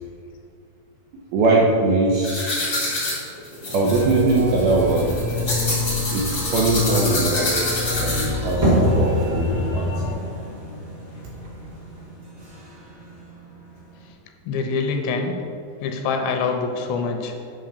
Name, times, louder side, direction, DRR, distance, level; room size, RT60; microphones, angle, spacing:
voice 1, 1.3-2.6 3.7-5.2 6.1-10.1, right 2 dB, 80° right, -2 dB, 2.3 m, -21 dB
sound 1, 2.2-8.5, left 1 dB, 40° left, 1.1 m, -27 dB
sound 2, 3.9-10.1, left 2 dB, 65° right, 3.7 m, -28 dB
sound 3, 8.6-14.1, equal, 35° right, 1.7 m, -25 dB
voice 2, 14.5-15.3 15.8-17.3, left 4 dB, 85° left, 4 dB, 2.9 m, -25 dB
9.3 x 3.4 x 6.7 m, 2.5 s
omnidirectional pair, 5.1 m